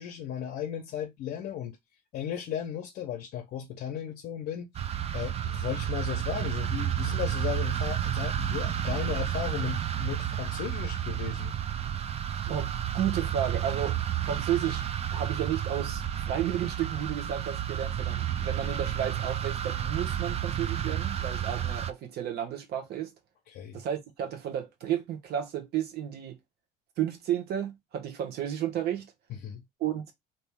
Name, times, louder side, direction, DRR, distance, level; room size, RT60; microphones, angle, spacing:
voice 1, 0.0-1.8 2.1-4.7 5.1-11.5 23.5-23.8 29.3-29.6, left 9 dB, 70° left, 0.7 m, -35 dB
sound 1, 4.7-21.9, right 10 dB, 40° right, 0.4 m, -31 dB
voice 2, 12.5-14.0 14.2-14.8 15.1-23.1 23.7-26.4 27.0-29.1 29.8-30.0, right 10 dB, 70° right, 1.0 m, -32 dB
3.0 x 2.7 x 3.5 m
cardioid pair, 110°, 17 cm